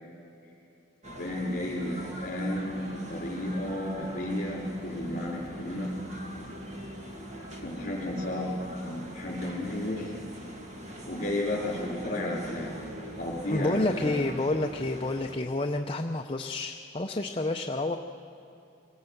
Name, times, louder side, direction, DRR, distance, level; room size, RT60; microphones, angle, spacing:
sound 1, 1.0-15.4, equal, 35° right, 2.0 m, -42 dB
voice 1, 1.2-5.9 7.6-8.5 8.8-10.1 11.1-12.7 13.2-14.2, left 1 dB, 45° left, -7 dB, 3.9 m, -33 dB
voice 2, 13.5-18.0, left 2 dB, 25° left, 3 dB, 0.6 m, -29 dB
26.0 x 18.0 x 7.9 m, 2.6 s
head